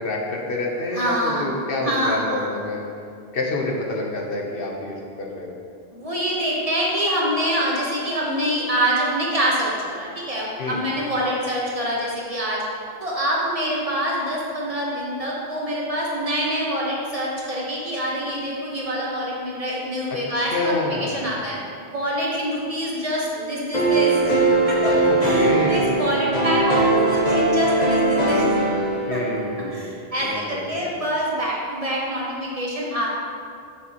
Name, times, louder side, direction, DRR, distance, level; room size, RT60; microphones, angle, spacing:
voice 1, 0.0-2.8 3.3-5.6 10.6-10.8 20.1-21.3 25.1-26.3 29.1-30.9, left 2 dB, 60° left, -1 dB, 1.0 m, -28 dB
voice 2, 0.9-1.5 1.8-2.5 5.9-12.6 13.0-21.6 21.9-24.4 24.7-24.9 25.2-28.5 28.8-28.9 29.1-29.2 29.7-33.1, equal, 35° right, -5 dB, 1.2 m, -25 dB
sound 1, 23.7-29.6, right 2 dB, 40° left, 1.2 m, -20 dB
7.4 x 6.2 x 2.9 m, 2.4 s
omnidirectional pair, 1.1 m